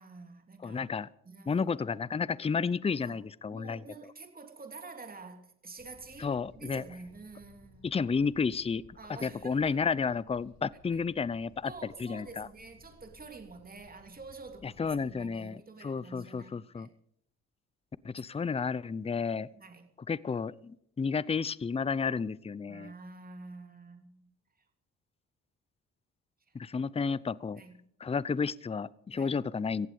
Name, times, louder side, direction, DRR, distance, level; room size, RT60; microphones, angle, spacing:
voice 1, 0.0-0.8 1.2-1.8 3.0-3.2 3.5-7.9 9.0-9.8 10.9-11.0 11.6-16.9 19.5-19.9 22.7-24.3 26.5-26.6 27.5-27.8 29.1-29.4, right 4 dB, 30° right, 5 dB, 3.2 m, -48 dB
voice 2, 0.6-1.1 1.5-3.8 6.2-6.8 7.8-8.8 9.2-12.5 14.6-16.9 18.0-19.5 20.1-22.9 26.5-27.6 28.0-29.9, left 5 dB, 20° left, 20 dB, 0.6 m, -32 dB
sound 1, 5.8-15.3, left 3 dB, 65° left, 7.0 m, -59 dB
18.0 x 15.0 x 5.1 m, 0.70 s
cardioid pair, 90°, 30 cm